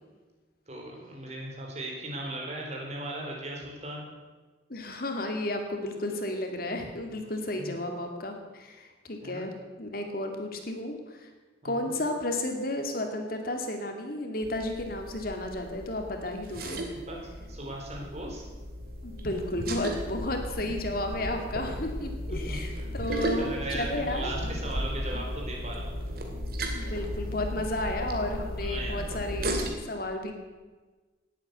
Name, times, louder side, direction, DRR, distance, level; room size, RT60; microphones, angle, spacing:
voice 1, 0.7-4.0 7.6-7.7 9.2-9.4 11.6-12.0 16.9-17.2 17.5-18.4 22.5-22.6 23.1-25.9 28.6-29.0, right 1 dB, 35° right, -1 dB, 4.2 m, -37 dB
voice 2, 4.7-9.5 9.8-11.3 11.6-16.8 19.0-24.3 26.7-30.3, left 1 dB, 50° left, 4 dB, 2.3 m, -33 dB
sound 1, 14.4-29.7, equal, 55° right, 2.6 m, -35 dB
18.5 x 9.1 x 8.1 m, 1.3 s
head